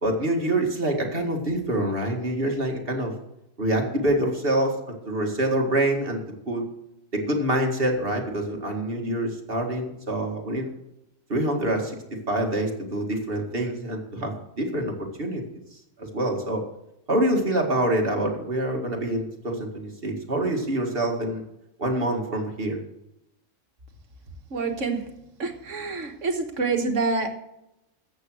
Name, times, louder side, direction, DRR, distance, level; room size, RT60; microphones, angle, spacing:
voice 1, 0.0-3.1 3.6-4.8 5.1-6.6 7.1-10.7 11.3-14.9 15.2-15.4 16.0-16.6 17.1-21.4 21.8-22.8, right 1 dB, 45° right, 1 dB, 2.4 m, -26 dB
voice 2, 24.5-25.1 25.4-27.3, right 4 dB, 75° right, 5 dB, 1.9 m, -27 dB
14.0 x 8.2 x 6.3 m, 0.86 s
omnidirectional pair, 1.3 m